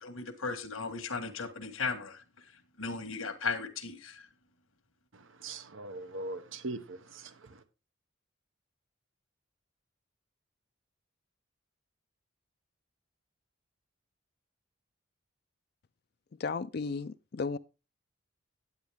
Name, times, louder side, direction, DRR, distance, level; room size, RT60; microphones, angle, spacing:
voice 1, 0.0-2.2 2.8-4.3, left 4 dB, 85° left, 1.5 m, -36 dB
voice 2, 5.4-7.6, right 2 dB, 75° right, 0.9 m, -41 dB
voice 3, 16.4-17.6, left 4 dB, 50° left, 0.4 m, -34 dB
9.7 x 9.4 x 3.4 m
head